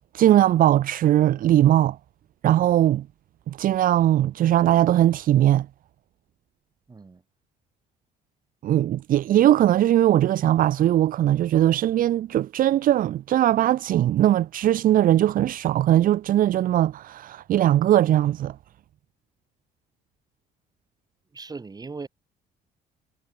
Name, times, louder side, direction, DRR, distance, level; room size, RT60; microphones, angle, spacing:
voice 1, 0.1-2.0 2.4-3.1 3.5-5.7 8.6-18.6, right 12 dB, 55° right, 0.7 m, -20 dB
voice 2, 6.9-7.2 21.3-22.1, right 4 dB, 25° right, 5.8 m, -38 dB
cardioid pair, 110°, 17 cm